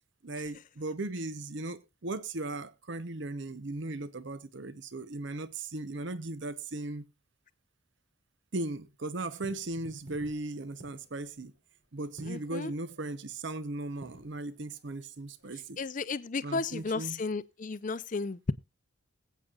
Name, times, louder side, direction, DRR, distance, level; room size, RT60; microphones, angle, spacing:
voice 1, 0.2-7.0 8.5-11.5 11.9-15.8 16.4-17.2, right 2 dB, 55° right, 0.8 m, -37 dB
sound 1, 9.3-15.9, right 1 dB, 75° right, 3.8 m, -53 dB
voice 2, 12.3-12.7 15.8-18.5, left 4 dB, 40° left, 0.5 m, -33 dB
20.5 x 8.4 x 2.4 m
head